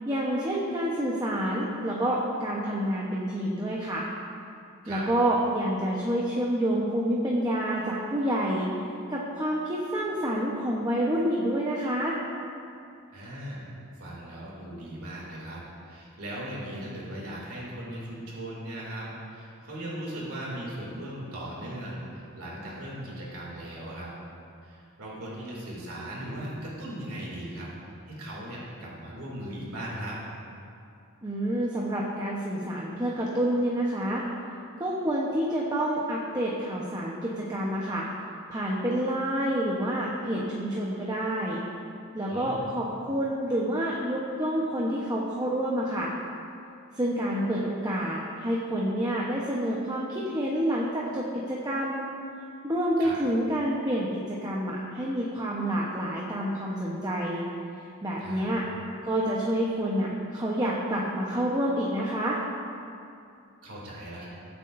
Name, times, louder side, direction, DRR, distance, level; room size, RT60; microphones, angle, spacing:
voice 1, 0.1-4.0 4.9-8.7 9.1-12.2 31.2-34.2 34.8-38.1 38.5-41.6 42.1-46.1 47.0-52.1 52.6-57.5 58.0-58.6 59.0-62.4, right 1 dB, 20° right, -4 dB, 1.0 m, -28 dB
voice 2, 13.1-13.7 14.0-24.1 24.6-27.7 28.1-30.2 42.3-42.6 53.0-53.2 58.2-58.5 63.6-64.3, right 1 dB, 80° right, -5 dB, 2.7 m, -38 dB
21.0 x 8.1 x 2.6 m, 2.6 s
head